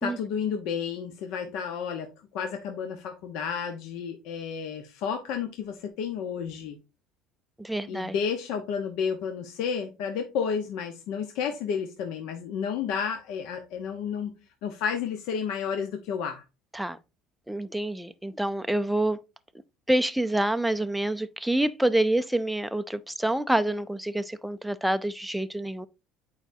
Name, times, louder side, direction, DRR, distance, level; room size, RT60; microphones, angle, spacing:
voice 1, 0.0-6.8 7.9-14.3 14.6-16.4, left 7 dB, 70° left, 0.9 m, -31 dB
voice 2, 7.6-8.1 16.7-17.0 17.5-19.2 19.9-25.9, right 1 dB, ahead, 0.4 m, -27 dB
8.8 x 4.9 x 2.7 m
cardioid pair, 150°, 0 cm